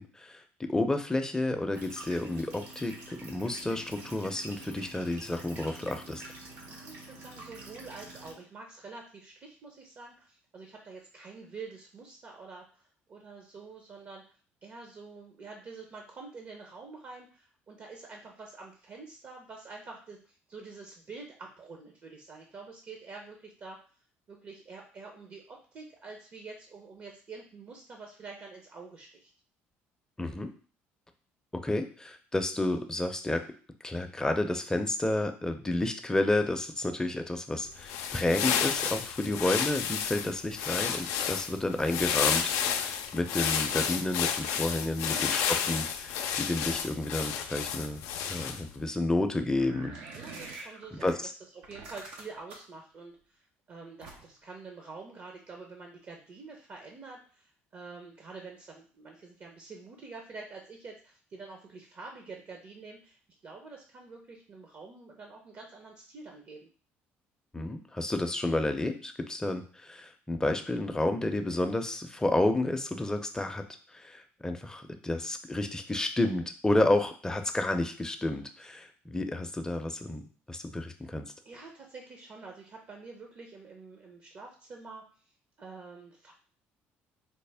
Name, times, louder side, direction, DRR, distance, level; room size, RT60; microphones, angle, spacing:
voice 1, 0.0-6.2 30.2-30.5 31.5-33.4 33.8-48.0 48.3-50.0 50.5-50.7 51.0-51.3 67.5-73.6 73.9-81.3, left 2 dB, 15° left, 6 dB, 0.5 m, -31 dB
sound 1, 1.7-8.3, right 2 dB, 70° right, 1.1 m, -47 dB
voice 2, 6.6-14.2 14.6-23.8 24.3-29.3 45.1-45.7 48.4-48.6 50.2-66.7 81.4-85.0 85.6-86.3, right 4 dB, 50° right, 1 dB, 0.7 m, -47 dB
sound 2, 37.7-48.8, left 8 dB, 80° left, 0.4 m, -31 dB
sound 3, 49.6-51.1 51.6-52.7 54.0-54.4, right 3 dB, 90° right, 0.8 m, -45 dB
4.3 x 2.1 x 3.4 m, 0.41 s
supercardioid pair, 80°, 5 cm